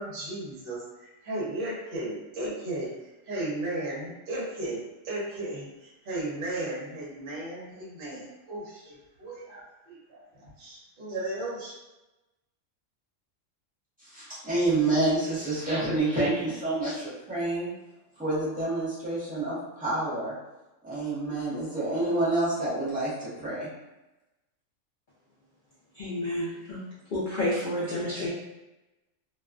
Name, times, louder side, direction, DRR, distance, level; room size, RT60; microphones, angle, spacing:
voice 1, 0.0-2.9 3.3-11.7, right 1 dB, 50° right, -5 dB, 0.8 m, -35 dB
voice 2, 14.0-17.7 18.2-20.3 20.8-23.7, right 2 dB, 5° right, -11 dB, 0.8 m, -28 dB
voice 3, 25.9-26.8 27.1-28.3, left 1 dB, 80° left, -7 dB, 0.4 m, -30 dB
2.3 x 2.2 x 2.3 m, 1.0 s
omnidirectional pair, 1.4 m